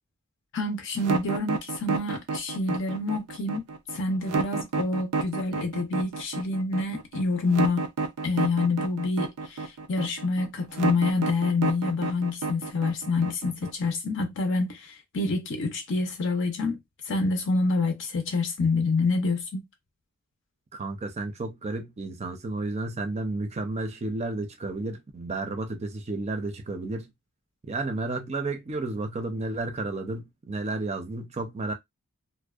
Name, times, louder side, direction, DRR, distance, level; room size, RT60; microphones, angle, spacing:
voice 1, 0.5-3.6 3.9-7.9 8.2-16.8 17.1-19.7, left 3 dB, 55° left, 0.5 m, -27 dB
sound 1, 1.0-13.9, right 4 dB, 85° right, 0.4 m, -30 dB
voice 2, 20.7-27.1 27.7-31.7, right 2 dB, 30° right, 0.5 m, -32 dB
2.6 x 2.1 x 2.3 m
head